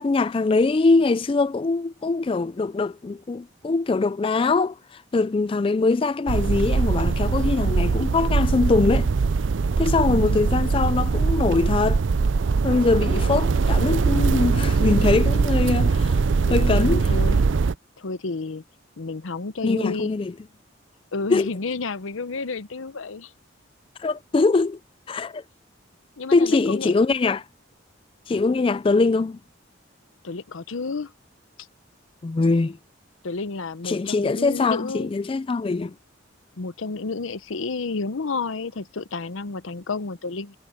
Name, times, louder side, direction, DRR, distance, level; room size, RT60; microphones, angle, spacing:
voice 1, 0.0-9.1 9.8-12.0 12.6-16.2 16.5-17.1 19.6-20.3 21.3-21.5 24.0-24.8 25.1-25.4 26.3-27.4 28.3-29.4 32.2-32.8 33.8-35.9, left 3 dB, 25° left, 0.3 m, -22 dB
sound 1, 6.3-17.7, right 4 dB, 65° right, 0.5 m, -21 dB
voice 2, 10.1-10.4 15.3-15.4 16.5-17.4 18.0-18.6 19.0-20.1 21.1-23.3 26.2-26.9 30.2-31.1 33.2-35.1 36.6-40.6, left 3 dB, 80° left, 0.8 m, -31 dB
head